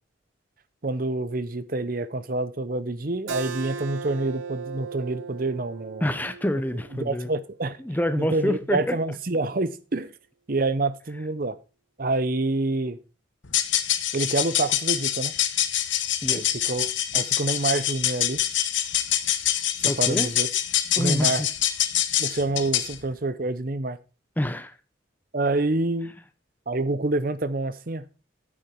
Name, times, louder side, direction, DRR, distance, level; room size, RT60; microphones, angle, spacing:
voice 1, 0.8-6.0 7.0-7.8 8.2-10.1 10.5-11.6 12.0-13.0 14.1-15.3 16.3-18.4 20.0-20.5 21.0-21.4 22.2-24.0 25.3-26.1 26.7-28.0, right 2 dB, 45° right, 0.8 m, -27 dB
Keyboard (musical), 3.3-8.5, right 5 dB, 90° right, 0.8 m, -38 dB
voice 2, 6.0-7.3 7.8-9.0 16.2-16.4 19.9-20.3 21.0-21.5 24.4-24.7, equal, 10° left, 0.7 m, -27 dB
sound 1, 13.4-23.0, left 11 dB, 75° left, 1.1 m, -25 dB
9.1 x 8.7 x 4.4 m
head